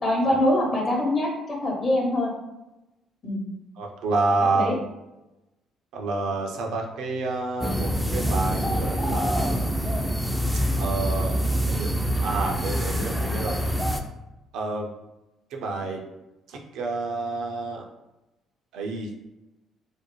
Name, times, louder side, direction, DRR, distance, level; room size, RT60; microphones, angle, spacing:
voice 1, 0.0-2.3 3.2-3.4 4.5-4.7, left 1 dB, 40° left, -1 dB, 0.9 m, -23 dB
voice 2, 3.8-4.9 5.9-9.7 10.7-11.9 12.2-13.5 14.5-14.9 15.5-16.0 16.5-17.8 18.7-19.2, right 3 dB, 70° right, 1 dB, 0.4 m, -29 dB
sound 1, 7.6-14.0, equal, 5° left, 0.3 m, -25 dB
2.5 x 2.0 x 3.0 m, 0.98 s
hypercardioid pair, 55°, 0 cm